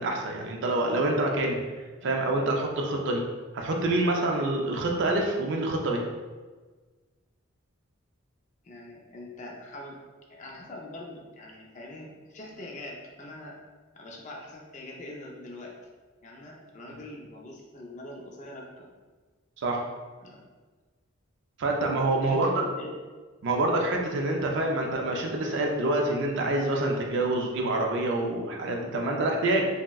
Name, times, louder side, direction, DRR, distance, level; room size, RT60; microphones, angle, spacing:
voice 1, 0.0-1.6 2.0-3.2 3.5-6.0 19.6-19.8 21.6-22.5 23.4-29.7, right 2 dB, 60° right, 1 dB, 0.4 m, -26 dB
voice 2, 8.6-10.0 10.3-13.5 13.9-15.7 16.2-18.9 20.2-20.4 22.2-22.9, left 2 dB, 35° left, -1 dB, 0.4 m, -43 dB
3.4 x 2.0 x 2.2 m, 1.3 s
head